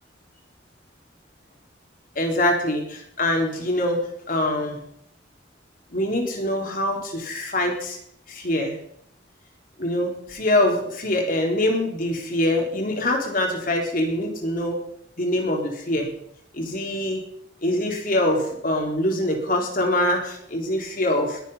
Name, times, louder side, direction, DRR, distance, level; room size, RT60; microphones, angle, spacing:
voice 1, 2.2-4.8 5.9-8.0 8.3-8.8 9.8-14.8 15.2-16.1 16.5-17.2 17.6-21.4, left 1 dB, 45° left, 2 dB, 4.0 m, -24 dB
21.0 x 9.0 x 5.7 m, 0.70 s
head